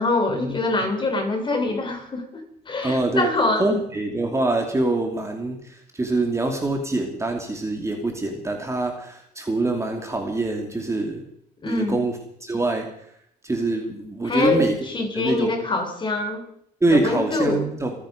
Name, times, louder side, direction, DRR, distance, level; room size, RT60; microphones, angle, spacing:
voice 1, 0.0-3.7 11.6-12.0 14.2-16.4 16.9-17.6, left 2 dB, 30° left, 6 dB, 4.1 m, -24 dB
voice 2, 2.8-3.3 3.6-11.2 11.7-12.9 13.4-14.8 15.1-15.5 16.8-17.9, right 2 dB, 15° right, 3 dB, 2.6 m, -24 dB
26.0 x 9.8 x 5.2 m, 0.70 s
cardioid pair, 110°, 17 cm